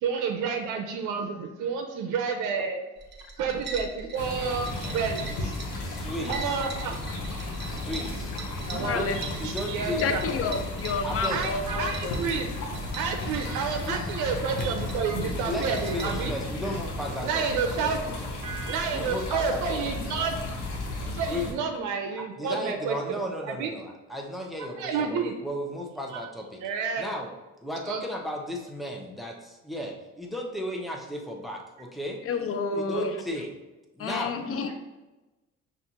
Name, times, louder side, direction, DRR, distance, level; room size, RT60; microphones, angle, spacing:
voice 1, 0.0-2.8 3.4-5.5 6.3-7.0 8.6-10.2 11.3-12.5 12.9-16.3 17.2-18.0 18.4-20.4 21.1-23.2 23.5-23.7 24.6-25.3 26.1-26.2 26.6-27.1 27.8-28.0, right 5 dB, 80° right, 3 dB, 0.5 m, -30 dB
sound 1, 3.0-16.3, right 3 dB, 35° right, 0.8 m, -42 dB
sound 2, 4.2-21.5, left 2 dB, 85° left, 0.8 m, -34 dB
voice 2, 5.8-6.4 7.7-8.3 8.8-10.2 11.0-11.4 13.8-14.0 15.5-18.3 18.9-19.8 21.3-21.6 22.1-26.6 27.0-27.3 27.6-32.2 32.7-33.5 33.9-34.4, equal, ahead, 0 dB, 0.7 m, -35 dB
voice 3, 8.7-9.2 9.8-12.2 20.4-20.5 32.2-33.1 34.0-34.7, left 5 dB, 50° left, 7 dB, 0.6 m, -30 dB
5.8 x 2.4 x 2.8 m, 1.1 s
cardioid pair, 90°, 30 cm